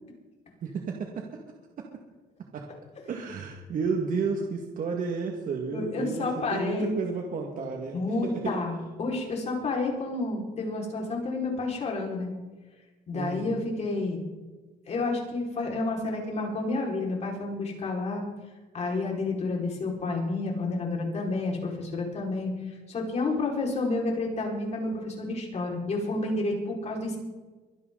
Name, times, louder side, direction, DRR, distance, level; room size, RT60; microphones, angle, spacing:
voice 1, 0.6-1.3 2.5-2.6 3.1-8.5 13.1-13.6, right 5 dB, 55° right, 1 dB, 2.0 m, -32 dB
voice 2, 5.7-6.9 7.9-12.3 13.1-14.2 14.9-18.2 18.7-22.5 22.9-27.2, left 3 dB, 40° left, -1 dB, 5.1 m, -30 dB
24.0 x 11.0 x 4.0 m, 1.2 s
cardioid pair, 110°, 17 cm